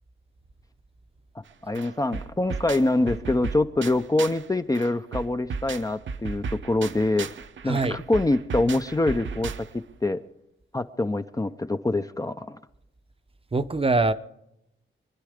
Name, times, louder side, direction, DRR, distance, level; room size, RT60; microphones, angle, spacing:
sound 1, 1.5-1.6 1.7-4.5 4.7-9.9, right 5 dB, 65° right, 0.9 m, -35 dB
voice 1, 1.6-7.3 7.6-9.5 10.0-10.2 10.7-12.6, left 2 dB, 15° left, 9 dB, 0.6 m, -25 dB
voice 2, 7.7-8.0 13.5-14.1, right 3 dB, 25° right, 11 dB, 0.8 m, -23 dB
25.0 x 10.5 x 5.0 m, 0.82 s
wide cardioid pair, 125°, 21 cm